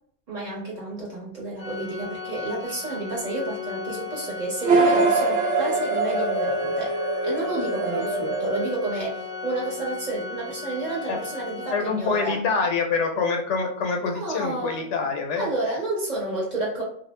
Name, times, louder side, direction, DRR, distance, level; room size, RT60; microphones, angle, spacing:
voice 1, 0.3-6.9 7.2-12.4 14.1-14.8 15.4-16.8, right 2 dB, 40° right, -5 dB, 1.0 m, -30 dB
Organ, 1.6-12.3, left 5 dB, 30° left, 0.5 m, -37 dB
sound 1, 4.6-9.5, right 3 dB, 75° right, 0.9 m, -24 dB
voice 2, 11.7-15.5, left 4 dB, 80° left, 3 dB, 0.9 m, -25 dB
2.3 x 2.0 x 3.1 m, 0.63 s
omnidirectional pair, 1.2 m